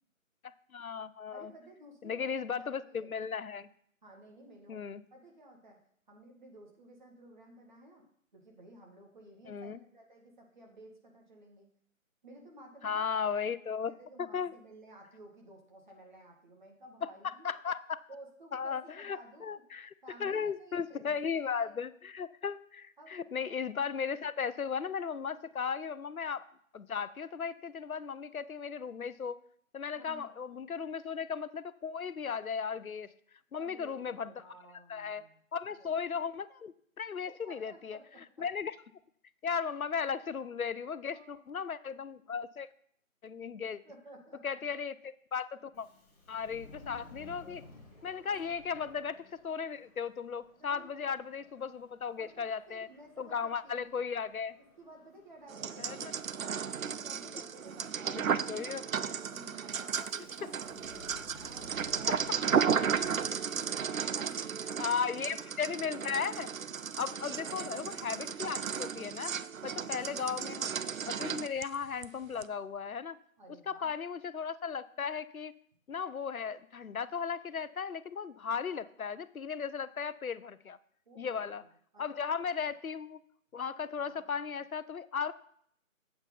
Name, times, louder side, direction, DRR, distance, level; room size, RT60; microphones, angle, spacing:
voice 1, 0.7-1.5 2.0-3.7 4.7-5.0 9.5-9.8 12.8-13.9 14.3-14.5 17.0-18.0 18.5-19.9 20.2-26.4 26.7-29.4 29.7-33.1 33.5-34.3 34.9-35.2 35.5-38.0 38.4-38.8 39.4-42.7 43.2-43.8 44.4-45.9 46.3-47.6 48.0-52.9 53.2-54.6 55.8-56.1 58.3-58.8 64.8-66.5 67.0-69.3 69.6-70.7 71.2-73.2 73.7-75.5 75.9-80.8 81.2-81.6 82.0-83.2 83.5-85.3, left 6 dB, 85° left, 15 dB, 0.7 m, -36 dB
voice 2, 1.3-2.3 2.6-3.2 4.0-4.8 5.1-5.8 6.1-8.0 8.3-11.7 12.2-13.0 13.4-13.6 13.9-17.5 18.1-19.6 20.0-21.8 23.0-23.2 29.9-30.3 33.6-35.4 35.7-35.9 37.4-38.2 41.1-41.6 43.3-43.4 43.8-44.4 48.2-48.5 50.6-51.1 52.2-53.9 54.6-64.9 67.2-67.6 69.6-70.6 73.4-73.9 81.1-82.1 82.6-82.7 84.0-84.6, right 1 dB, 35° right, 0 dB, 2.1 m, -55 dB
Subway metro underground, 45.7-64.0, left 2 dB, 5° left, 1.5 m, -58 dB
sound 1, 55.5-72.1 72.4-72.5, right 7 dB, 75° right, 0.6 m, -34 dB
8.9 x 8.1 x 4.0 m, 0.64 s
figure-of-eight pair, 160°, 41 cm